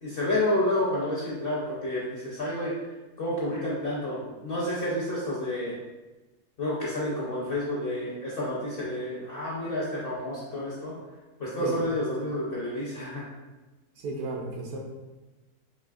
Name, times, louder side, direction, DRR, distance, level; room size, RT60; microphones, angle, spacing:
voice 1, 0.0-2.7 3.2-5.7 6.6-10.9 11.4-13.3, left 1 dB, 55° left, -6 dB, 0.6 m, -30 dB
voice 2, 14.0-14.8, right 2 dB, 70° right, 0 dB, 1.0 m, -33 dB
4.2 x 2.9 x 2.4 m, 1.1 s
omnidirectional pair, 1.7 m